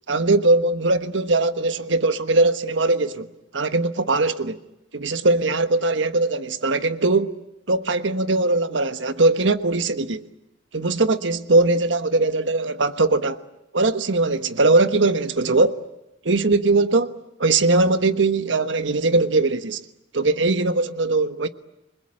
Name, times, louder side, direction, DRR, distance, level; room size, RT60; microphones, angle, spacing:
voice 1, 0.1-3.3 3.5-4.6 4.9-7.3 7.7-10.3 10.7-13.4 13.7-15.8 16.2-17.1 17.4-19.8 20.1-21.5, right 2 dB, 80° right, 1.3 m, -20 dB
29.0 x 21.5 x 8.7 m
head